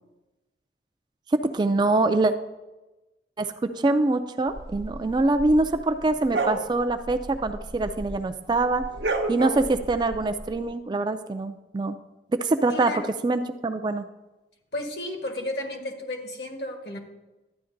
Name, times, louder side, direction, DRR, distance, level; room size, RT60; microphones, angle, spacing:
voice 1, 1.4-2.3 3.4-8.8 9.3-12.0 12.3-12.9 13.2-14.1, right 2 dB, 25° right, 8 dB, 0.3 m, -24 dB
sound 1, 4.6-8.2 8.5-10.5, right 2 dB, 75° right, 0.7 m, -31 dB
voice 2, 12.7-13.1 14.7-17.0, left 1 dB, 65° left, 3 dB, 1.3 m, -33 dB
12.0 x 9.3 x 2.6 m, 1.1 s
head